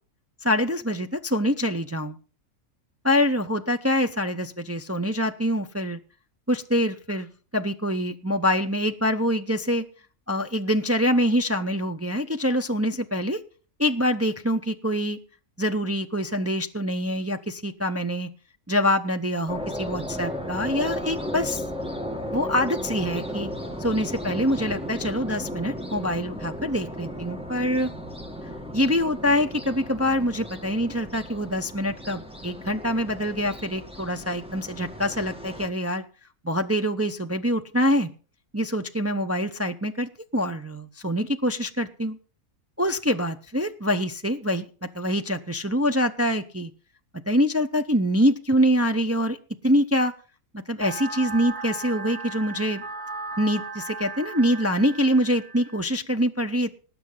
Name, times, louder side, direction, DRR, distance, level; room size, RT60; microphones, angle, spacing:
voice 1, 0.4-2.2 3.0-6.0 6.5-9.8 10.3-13.4 13.8-15.2 15.6-18.3 18.7-21.6 22.3-23.5 23.8-27.9 28.7-36.0 36.4-38.1 38.5-42.2 42.8-44.7 44.9-46.7 47.3-49.4 49.6-50.1 50.5-52.8 53.4-56.7, equal, 20° right, 6 dB, 0.4 m, -25 dB
sound 1, 19.5-35.7, equal, 5° right, 1.9 m, -35 dB
sound 2, 50.8-55.8, right 4 dB, 85° right, 1.9 m, -36 dB
19.0 x 7.8 x 5.5 m, 0.39 s
omnidirectional pair, 1.6 m